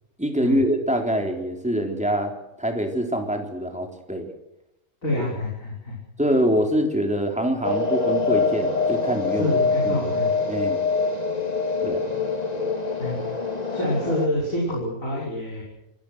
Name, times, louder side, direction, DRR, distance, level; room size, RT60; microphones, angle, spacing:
voice 1, 0.2-2.3 2.6-4.3 6.2-9.6 9.9-10.0 10.5-10.8 11.8-12.2, equal, 5° right, 3 dB, 3.8 m, -24 dB
voice 2, 5.0-6.0 9.4-10.3 13.0-13.2 13.7-15.6, left 1 dB, 85° left, -4 dB, 6.2 m, -27 dB
sound 1, 7.6-14.3, left 4 dB, 30° left, 2.5 m, -24 dB
27.5 x 18.5 x 6.3 m, 0.90 s
omnidirectional pair, 1.4 m